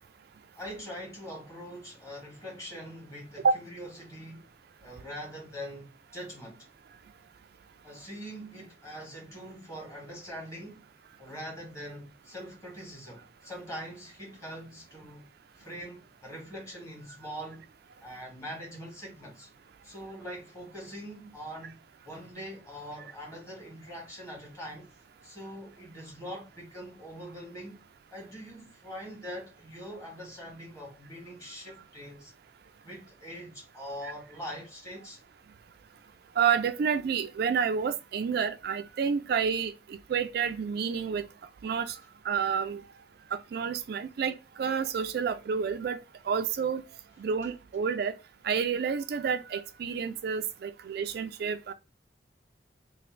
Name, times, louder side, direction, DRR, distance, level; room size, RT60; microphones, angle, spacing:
voice 1, 0.5-4.5 4.8-6.7 7.8-10.8 11.2-15.2 15.5-17.6 18.0-19.5 19.8-24.9 25.2-27.8 28.1-32.3 32.8-35.2, equal, 15° left, 1.7 m, -43 dB
voice 2, 36.4-41.2 41.6-42.0 42.2-42.8 43.3-46.0 46.3-46.8 47.2-48.2 48.4-51.7, right 6 dB, 60° right, 0.3 m, -29 dB
3.2 x 2.6 x 3.7 m
head